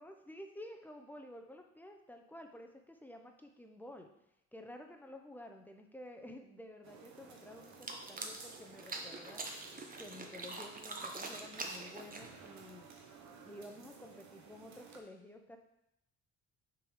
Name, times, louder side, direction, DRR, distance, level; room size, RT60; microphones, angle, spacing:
voice 1, 0.0-4.1 4.5-12.9 13.4-15.6, left 1 dB, 5° left, 4 dB, 0.8 m, -52 dB
sound 1, 6.8-15.0, right 5 dB, 65° right, 1.0 m, -55 dB
sound 2, 7.7-12.5, right 3 dB, 30° right, 0.9 m, -44 dB
6.3 x 3.8 x 4.8 m, 0.83 s
cardioid pair, 90°, 30 cm